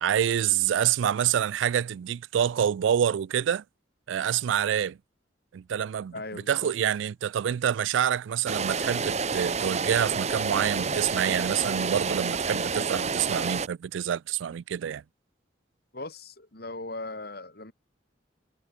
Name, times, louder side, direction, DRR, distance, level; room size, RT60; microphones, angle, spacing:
voice 1, 0.0-3.6 4.1-5.0 5.5-15.0, right 9 dB, 85° right, 0.3 m, -27 dB
voice 2, 6.1-6.7 15.9-17.7, left 2 dB, 55° left, 3.7 m, -38 dB
sound 1, 8.5-13.7, right 5 dB, 35° right, 1.0 m, -29 dB
head